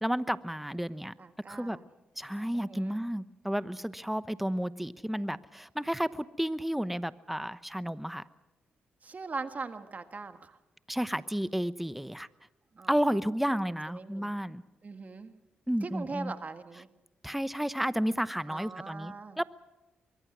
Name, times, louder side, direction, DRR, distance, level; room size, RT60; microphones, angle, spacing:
voice 1, 0.0-1.1 1.5-1.8 2.2-8.2 10.9-12.3 12.9-14.6 15.7-16.3 17.2-19.4, equal, 5° right, 15 dB, 0.9 m, -32 dB
voice 2, 1.2-1.8 2.5-3.0 9.0-10.6 12.7-13.2 13.7-14.3 14.8-15.3 15.8-16.9 18.5-19.4, right 4 dB, 45° right, 8 dB, 1.7 m, -41 dB
24.0 x 22.5 x 6.2 m, 1.0 s
cardioid pair, 65°, 4 cm